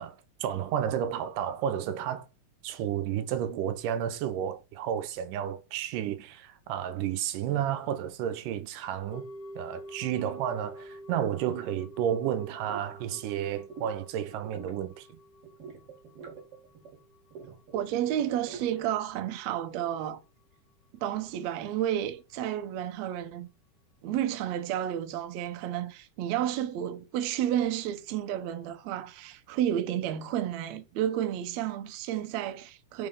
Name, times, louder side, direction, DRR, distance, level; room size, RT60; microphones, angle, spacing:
voice 1, 0.0-2.3 2.6-9.3 9.6-15.1, right 10 dB, 90° right, 2.3 m, -31 dB
sound 1, 9.1-19.4 19.7-19.8, equal, 65° left, 1.8 m, -49 dB
sound 2, 12.2-12.3 12.7-12.8 13.1-14.0 14.3-14.8 15.4-17.0 17.3-18.8, right 5 dB, 55° right, 2.4 m, -45 dB
voice 2, 17.7-20.2 20.9-23.5 24.0-33.1, right 11 dB, 70° right, 1.8 m, -31 dB
5.7 x 3.3 x 5.4 m
omnidirectional pair, 3.6 m